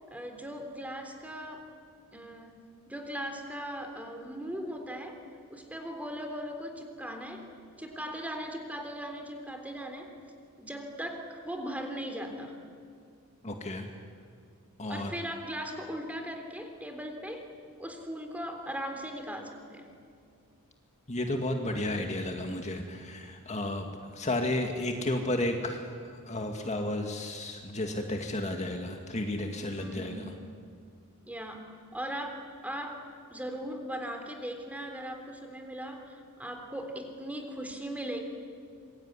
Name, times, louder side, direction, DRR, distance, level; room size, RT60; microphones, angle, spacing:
voice 1, 0.1-1.7 2.1-2.6 2.9-5.2 5.5-7.5 7.8-10.1 10.6-12.5 14.9-17.4 17.8-19.9 29.8-30.3 31.3-38.2, equal, 5° right, 5 dB, 3.5 m, -39 dB
voice 2, 13.4-13.9 14.8-15.1 21.1-23.9 24.1-30.3, left 1 dB, 30° left, 3 dB, 2.0 m, -32 dB
26.5 x 23.0 x 9.8 m, 2.3 s
head